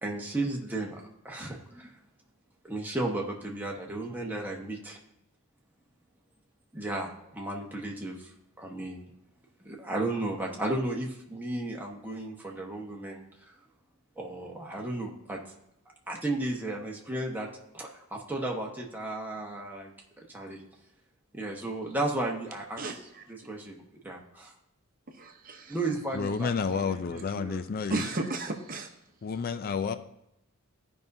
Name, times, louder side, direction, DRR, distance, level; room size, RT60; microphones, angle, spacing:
voice 1, 0.0-1.9 2.6-5.0 6.7-8.3 8.6-9.1 9.6-13.2 14.2-15.4 16.1-17.5 17.7-19.9 20.2-20.6 21.3-22.8 23.3-23.8 24.0-24.5 25.7-27.6, right 2 dB, 10° right, -1 dB, 1.2 m, -34 dB
voice 2, 22.8-23.3 25.2-25.8 27.9-28.9, right 2 dB, 40° right, 4 dB, 0.9 m, -34 dB
voice 3, 26.1-28.0 29.2-29.9, left 5 dB, 45° left, 11 dB, 0.4 m, -30 dB
15.0 x 5.4 x 2.7 m, 0.83 s
head